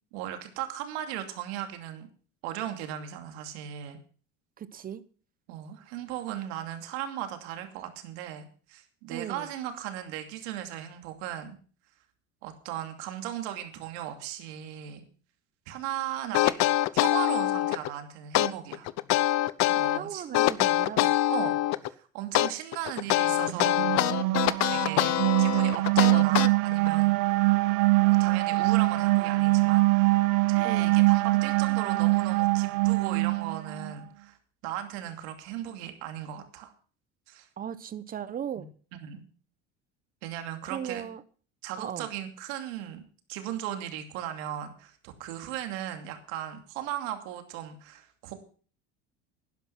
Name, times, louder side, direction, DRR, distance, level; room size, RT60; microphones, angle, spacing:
voice 1, 0.1-2.1 2.4-4.0 5.5-11.6 12.4-15.0 15.7-16.5 16.9-18.9 19.4-19.5 19.7-20.7 21.3-21.5 21.8-27.1 28.2-30.1 30.5-34.4 34.6-36.7 37.3-37.5 38.6-38.7 39.0-39.2 40.2-41.1 41.6-43.0 43.3-48.3, right 11 dB, 85° right, 2.7 m, -37 dB
voice 2, 4.6-5.0 9.1-9.5 19.9-21.2 30.6-31.0 37.6-38.7 40.7-41.2 41.8-42.1, right 9 dB, 25° right, 0.9 m, -37 dB
sound 1, 16.3-17.9 18.3-20.0 20.3-21.9 22.3-26.9, left 15 dB, 55° left, 0.8 m, -24 dB
sound 2, 23.4-33.9, right 22 dB, 65° right, 0.9 m, -24 dB
11.5 x 10.5 x 5.8 m
cardioid pair, 130°, 33 cm